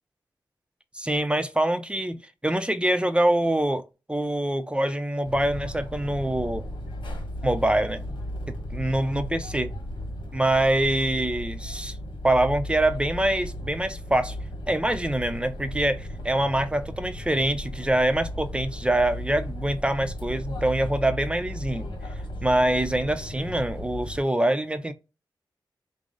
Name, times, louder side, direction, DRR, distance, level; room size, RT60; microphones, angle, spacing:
voice 1, 0.9-3.8 4.1-6.6 7.4-8.0 8.5-9.7 10.3-12.0 12.2-14.4 14.7-21.9 22.4-24.9, right 1 dB, 15° right, 0.5 m, -25 dB
sound 1, 5.2-24.2, equal, 80° left, 1.2 m, -35 dB
5.0 x 2.0 x 3.7 m
wide cardioid pair, 80°, 8 cm